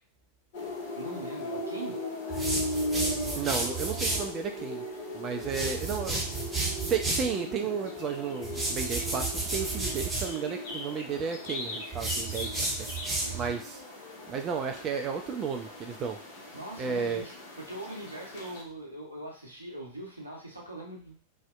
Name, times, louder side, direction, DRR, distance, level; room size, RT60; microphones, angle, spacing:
sound 1, 0.5-18.6, left 1 dB, 55° left, 0.6 m, -38 dB
voice 1, 0.9-2.0 13.2-13.5 16.5-21.2, right 1 dB, 85° right, -1 dB, 0.7 m, -41 dB
sound 2, 2.3-4.3 5.4-7.3 8.4-10.3 11.9-13.5, right 3 dB, 10° right, 0.7 m, -32 dB
voice 2, 3.4-4.9 5.1-6.2 6.9-12.7 13.3-13.8 14.3-16.2 16.8-17.2, right 6 dB, 30° right, 4 dB, 0.3 m, -33 dB
2.6 x 2.0 x 2.3 m, 0.41 s
figure-of-eight pair, 90°, 0 cm